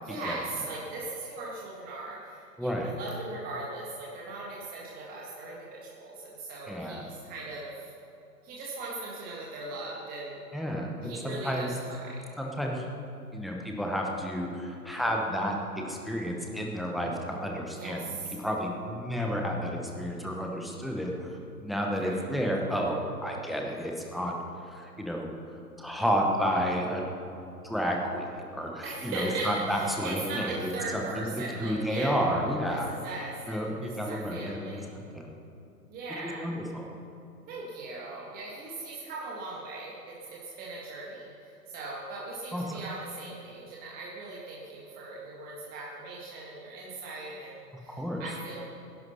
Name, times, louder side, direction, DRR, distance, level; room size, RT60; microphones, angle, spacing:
voice 1, 0.0-7.9 8.4-10.4 11.0-12.2 17.7-18.4 21.9-22.2 28.8-32.3 32.7-34.9 35.9-36.5 37.5-48.7, right 2 dB, 20° right, -5 dB, 2.0 m, -39 dB
voice 2, 2.6-2.9 6.7-7.0 10.5-11.7 12.4-12.9 13.3-15.6 15.8-18.0 18.4-24.3 24.7-25.3 25.8-27.0 27.6-28.2 28.5-32.9 33.5-34.8 35.1-35.3 36.4-36.9 42.5-42.6 47.9-48.2, equal, ahead, 0 dB, 1.0 m, -31 dB
19.5 x 11.5 x 5.7 m, 2.7 s
figure-of-eight pair, 130°, 49 cm